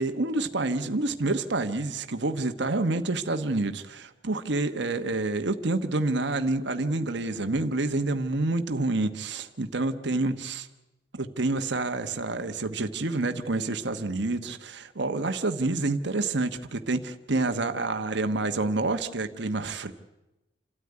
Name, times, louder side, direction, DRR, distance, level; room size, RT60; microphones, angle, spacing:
voice 1, 0.0-10.7 11.2-19.9, right 2 dB, 65° right, 7 dB, 1.2 m, -28 dB
28.0 x 13.5 x 9.7 m, 0.99 s
head